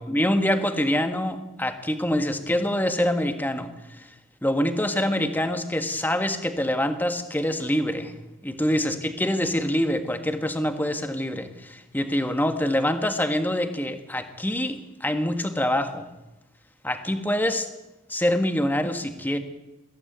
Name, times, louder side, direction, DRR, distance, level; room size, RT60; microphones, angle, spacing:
voice 1, 0.0-3.7 4.0-4.1 4.4-8.1 8.4-16.1 16.8-17.7 18.1-19.4, left 1 dB, 10° left, 7 dB, 1.6 m, -25 dB
21.5 x 16.0 x 9.3 m, 1.0 s
head